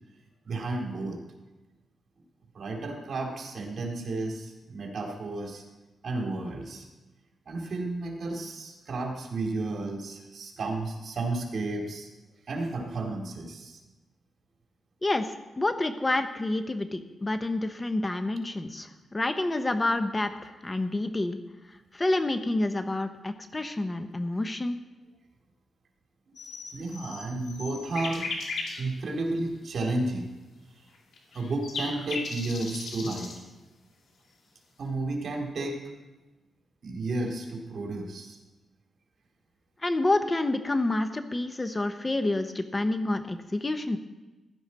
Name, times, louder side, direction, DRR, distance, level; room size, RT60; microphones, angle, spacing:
voice 1, 0.4-1.2 2.5-5.6 6.0-6.9 7.5-12.1 12.5-13.8 26.7-28.3 28.8-30.3 31.3-33.4 34.8-35.8 36.8-38.4, right 2 dB, 60° right, 2 dB, 2.4 m, -32 dB
voice 2, 15.0-21.4 21.9-24.8 39.8-44.0, left 2 dB, 20° left, 9 dB, 0.7 m, -28 dB
sound 1, 26.4-28.8 29.4-29.5 30.9-33.4, left 3 dB, 75° left, 2.6 m, -36 dB
15.5 x 11.5 x 4.1 m, 1.1 s
cardioid pair, 115°, 0 cm